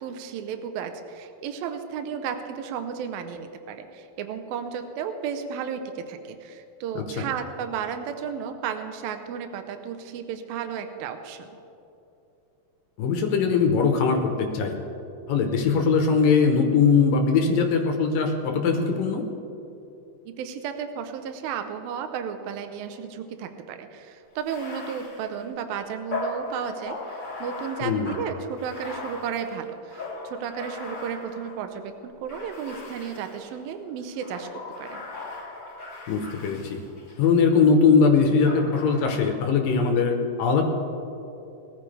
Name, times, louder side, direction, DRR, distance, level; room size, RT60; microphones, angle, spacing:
voice 1, 0.0-11.5 20.4-35.1, right 7 dB, 75° right, 7 dB, 2.4 m, -33 dB
voice 2, 7.0-7.3 13.0-14.8 15.3-19.2 27.8-28.2 36.1-36.8 37.2-40.6, left 5 dB, 70° left, 3 dB, 2.5 m, -21 dB
Bathtub (filling or washing), 24.4-31.7 32.3-33.6 34.1-37.3 38.5-39.4, left 3 dB, 35° left, 3.9 m, -38 dB
21.5 x 14.0 x 3.4 m, 2.9 s
omnidirectional pair, 4.8 m